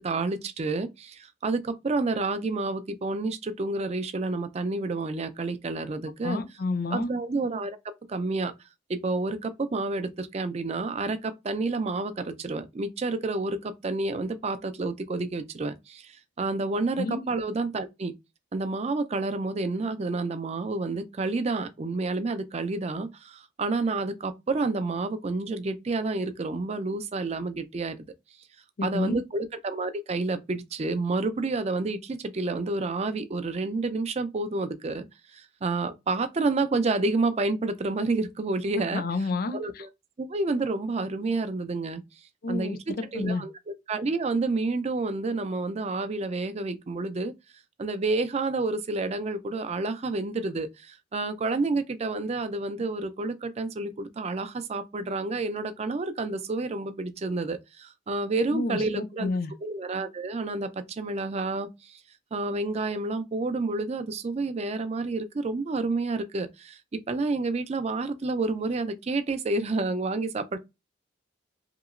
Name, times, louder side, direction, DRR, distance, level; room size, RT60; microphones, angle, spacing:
voice 1, 0.0-6.4 6.9-7.8 8.1-8.5 8.9-18.1 18.5-28.0 28.8-35.1 35.3-39.0 39.5-39.9 40.2-42.0 42.5-42.8 43.1-47.3 47.8-59.3 59.6-62.0 62.3-66.8 67.1-70.6, right 3 dB, 35° right, 0.4 m, -29 dB
voice 2, 6.2-7.1 17.0-17.3 28.8-29.2 38.9-39.9 42.4-42.8 43.1-43.4 58.5-59.5, left 3 dB, 50° left, 0.4 m, -30 dB
2.9 x 2.8 x 2.4 m
head